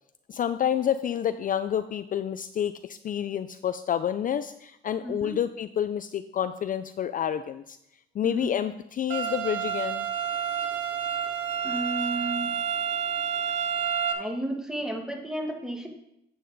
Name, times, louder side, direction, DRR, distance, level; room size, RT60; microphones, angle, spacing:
voice 1, 0.3-7.8 8.1-10.1, left 9 dB, 45° left, 11 dB, 0.4 m, -29 dB
voice 2, 5.0-5.4 8.2-8.5 11.6-12.6 14.1-15.9, right 1 dB, 5° right, 2 dB, 1.6 m, -33 dB
sound 1, 9.1-14.1, right 8 dB, 70° right, 1.1 m, -29 dB
8.4 x 7.5 x 3.9 m, 0.80 s
cardioid pair, 90°, 20 cm